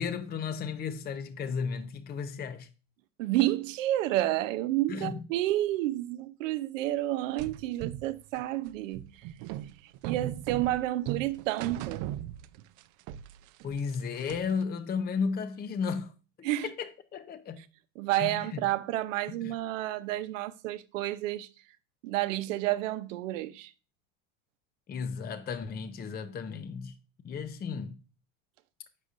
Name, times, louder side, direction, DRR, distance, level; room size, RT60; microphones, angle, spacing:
voice 1, 0.0-2.7 4.9-5.3 13.6-17.6 18.2-18.6 19.4-19.5 24.9-27.0 27.2-28.0, left 6 dB, 25° left, 0.7 m, -34 dB
voice 2, 3.2-9.0 10.0-12.1 16.4-16.7 18.0-21.5 22.0-23.7, right 15 dB, 80° right, 0.8 m, -30 dB
sound 1, 7.4-12.8 13.1-14.6, right 13 dB, 55° right, 0.5 m, -38 dB
8.0 x 6.5 x 2.5 m
supercardioid pair, 110°, 38 cm